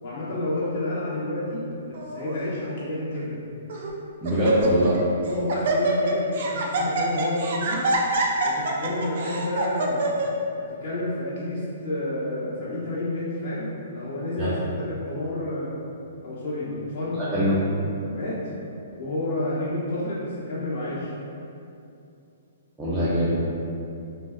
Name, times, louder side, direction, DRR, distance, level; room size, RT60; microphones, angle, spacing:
voice 1, 0.0-3.4 5.3-7.8 8.4-10.1 10.8-15.7 16.2-17.6 18.0-18.3 19.0-21.1, left 1 dB, 55° left, -8 dB, 1.1 m, -30 dB
Laughter, 1.9-2.3 3.1-3.2 3.7-4.0 4.2-5.0 5.3-10.3, right 2 dB, 55° right, 0.4 m, -26 dB
voice 2, 4.2-4.9 14.4-14.5 17.3-17.5 22.8-23.4, equal, 10° right, -13 dB, 0.6 m, -22 dB
3.1 x 2.6 x 2.2 m, 2.6 s
hypercardioid pair, 145°, 0 cm